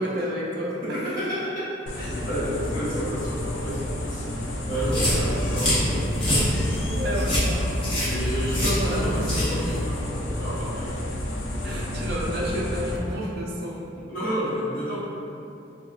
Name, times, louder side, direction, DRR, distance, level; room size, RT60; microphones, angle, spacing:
voice 1, 0.0-0.7 5.0-5.2 6.9-7.6 8.6-9.2 11.6-13.8, equal, 55° right, -3 dB, 0.5 m, -30 dB
voice 2, 0.6-1.7 2.0-6.0 8.0-11.0 13.1-13.4 13.9-15.0, equal, 45° left, -12 dB, 1.1 m, -31 dB
sound 1, 1.9-13.0, left 1 dB, 80° left, 0.4 m, -31 dB
sound 2, 4.7-9.8, left 1 dB, 30° left, 0.7 m, -25 dB
3.6 x 2.2 x 2.4 m, 2.7 s
head